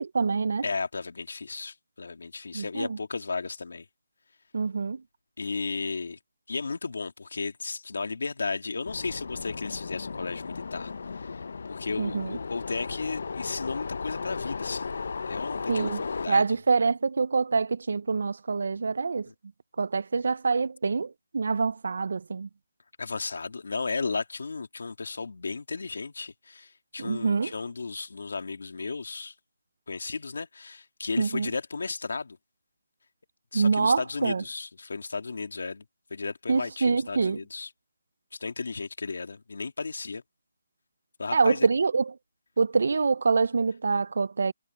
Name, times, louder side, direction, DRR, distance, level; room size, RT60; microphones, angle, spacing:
voice 1, 0.0-0.6 2.5-3.0 4.5-5.0 12.0-12.4 15.7-19.3 19.8-22.5 27.0-27.5 31.2-31.5 33.5-34.4 36.5-37.4 41.3-42.2 42.6-44.5, right 4 dB, 65° right, 0.5 m, -25 dB
voice 2, 0.6-3.8 5.4-6.2 6.5-14.9 15.3-16.6 19.3-19.4 23.0-29.3 29.9-32.4 33.5-35.8 36.1-37.7 38.4-40.2 41.2-41.7, left 4 dB, 75° left, 2.7 m, -34 dB
sound 1, 8.8-16.3, left 4 dB, 60° left, 0.6 m, -35 dB
hypercardioid pair, 175°, 0 cm